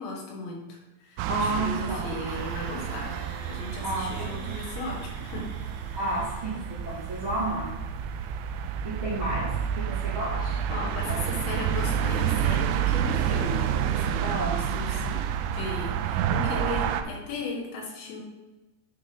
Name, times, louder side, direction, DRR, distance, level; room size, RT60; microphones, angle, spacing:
voice 1, 0.0-3.2 3.5-5.5 5.9-6.1 10.7-15.3 15.5-18.2, left 2 dB, 75° left, -2 dB, 3.7 m, -36 dB
sound 1, 1.2-17.0, right 9 dB, 85° right, 3.0 m, -29 dB
voice 2, 1.3-2.1 3.8-4.3 5.9-6.5 6.8-7.7 8.8-9.5 9.7-10.6 11.1-11.2 14.2-14.5, right 1 dB, 50° right, -9 dB, 1.5 m, -31 dB
sound 2, 2.3-16.3 16.6-16.9 17.2-17.3, right 4 dB, 70° right, 2.4 m, -48 dB
10.0 x 3.7 x 5.0 m, 1.1 s
omnidirectional pair, 5.3 m